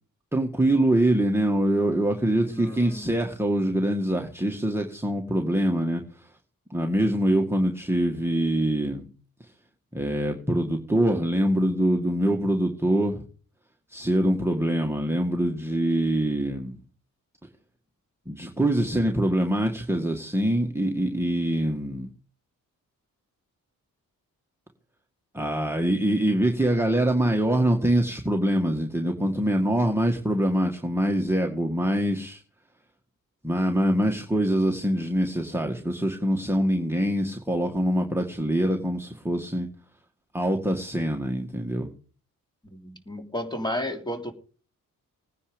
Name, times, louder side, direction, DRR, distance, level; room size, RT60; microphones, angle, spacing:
voice 1, 0.3-6.3 6.7-9.1 9.9-13.2 13.9-16.8 18.3-22.1 25.3-32.4 33.4-39.7 40.3-41.9, right 1 dB, 5° right, 1 dB, 1.9 m, -24 dB
voice 2, 2.4-3.2 42.7-44.3, left 1 dB, 10° left, 4 dB, 3.1 m, -33 dB
18.5 x 9.7 x 5.2 m, 0.41 s
cardioid pair, 95°, 35 cm